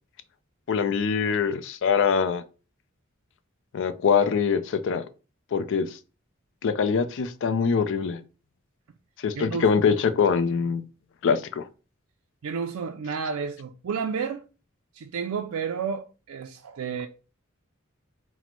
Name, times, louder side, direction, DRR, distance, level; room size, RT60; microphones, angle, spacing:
voice 1, 0.7-2.4 3.7-5.1 5.5-6.0 6.6-8.2 9.2-10.8 11.2-11.7, left 6 dB, 60° left, 0.4 m, -23 dB
voice 2, 9.4-9.7 12.4-14.4 14.9-17.1, right 6 dB, 80° right, 0.4 m, -31 dB
4.1 x 2.1 x 4.4 m
head